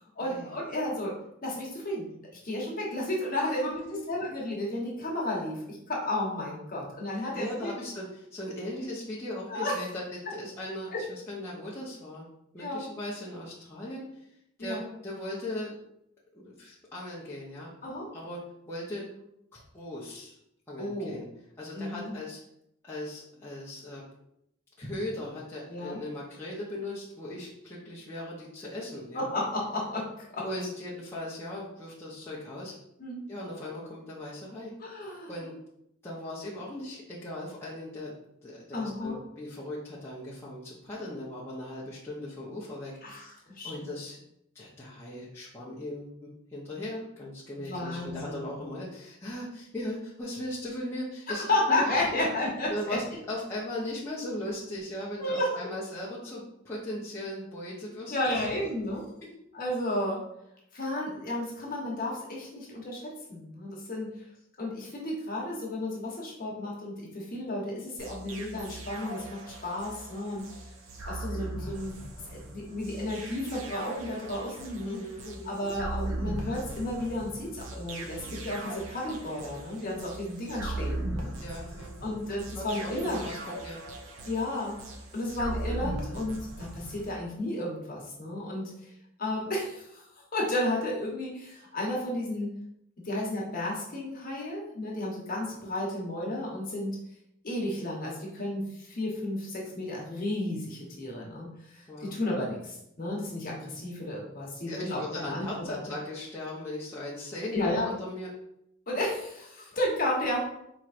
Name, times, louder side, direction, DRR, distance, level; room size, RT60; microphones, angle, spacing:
voice 1, 0.2-1.2 1.4-2.1 2.4-3.8 4.1-7.7 9.5-9.8 10.9-11.0 12.6-12.9 14.6-14.9 17.8-18.1 20.8-21.2 21.7-22.1 25.7-26.0 29.1-30.4 33.0-33.2 34.8-35.5 38.7-39.2 43.0-43.9 47.6-48.6 51.3-53.0 55.2-55.7 58.1-59.1 59.5-60.2 60.7-64.1 64.6-70.4 71.0-71.9 72.3-75.0 75.4-81.3 82.0-83.3 84.3-84.8 85.1-88.7 89.2-92.5 93.0-97.0 97.4-105.8 107.5-107.9 108.9-110.4, left 1 dB, 45° left, -3 dB, 1.0 m, -32 dB
voice 2, 3.4-4.0 7.1-10.0 10.3-12.2 12.5-14.0 14.6-15.8 16.3-17.7 18.1-19.2 19.5-20.3 20.7-21.3 21.6-22.4 22.8-24.0 24.8-29.3 30.4-32.7 33.3-34.7 35.3-35.5 36.0-38.1 38.4-43.3 43.6-44.2 44.5-52.3 52.7-58.5 59.2-59.3 74.8-75.5 81.4-82.0 82.5-84.0 101.9-102.5 104.7-108.3, left 1 dB, 10° left, -8 dB, 0.6 m, -38 dB
sound 1, 68.0-87.2, right 1 dB, 75° right, 0.6 m, -39 dB
4.3 x 3.0 x 2.5 m, 0.77 s
head